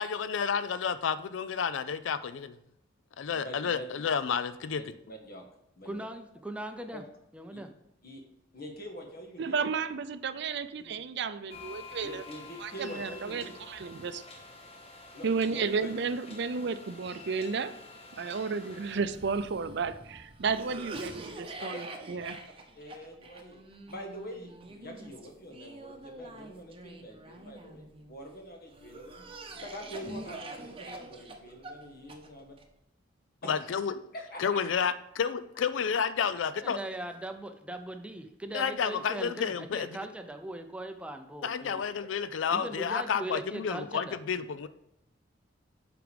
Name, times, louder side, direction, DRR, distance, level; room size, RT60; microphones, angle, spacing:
voice 1, 0.0-2.6 3.2-4.8 33.5-34.0 34.4-36.8 38.5-39.9 41.4-44.7, left 6 dB, 85° left, 14 dB, 0.4 m, -30 dB
voice 2, 3.3-3.9 4.8-5.4 5.8-6.0 6.9-7.0 7.5-7.6 8.0-8.2 8.5-9.5 10.8-11.0 12.0-13.6 15.1-16.0 20.6-20.9 21.6-22.1 22.7-23.6 23.9-29.2 29.5-32.5 33.4-33.8 34.1-34.6 43.1-43.2, equal, 50° left, 3 dB, 1.6 m, -45 dB
voice 3, 5.8-7.0 7.3-7.7 36.6-41.8 42.5-44.2, right 1 dB, 5° right, 6 dB, 0.5 m, -40 dB
voice 4, 9.4-12.2 12.6-14.2 15.2-17.8 18.2-22.4, right 5 dB, 65° right, 13 dB, 0.5 m, -33 dB
sound 1, 11.5-19.0, left 3 dB, 35° left, 1.3 m, -48 dB
Cough, 18.9-28.1 28.7-32.6, right 2 dB, 30° right, 0.8 m, -45 dB
7.8 x 5.1 x 5.1 m, 0.81 s
head